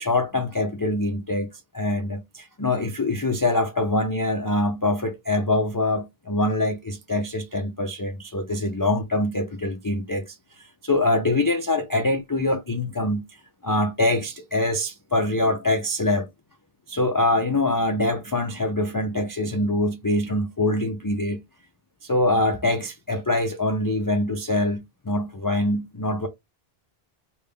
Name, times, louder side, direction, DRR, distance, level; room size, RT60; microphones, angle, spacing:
voice 1, 0.0-16.3 16.9-21.4 22.0-26.3, left 2 dB, 35° left, 0.3 m, -24 dB
3.5 x 2.3 x 3.4 m
omnidirectional pair, 1.0 m